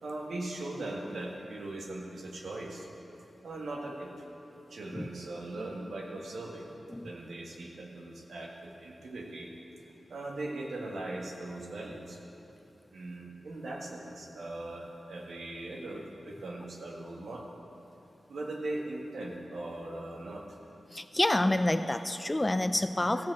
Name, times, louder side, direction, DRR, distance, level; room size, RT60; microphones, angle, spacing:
voice 1, 0.0-2.9 3.4-4.1 4.7-6.7 6.9-9.5 10.1-12.2 12.9-17.4 18.3-20.6, right 2 dB, 70° right, 0 dB, 1.6 m, -39 dB
voice 2, 20.9-23.3, left 1 dB, 15° left, 10 dB, 0.4 m, -28 dB
15.5 x 5.7 x 7.6 m, 2.9 s
wide cardioid pair, 160°, 0 cm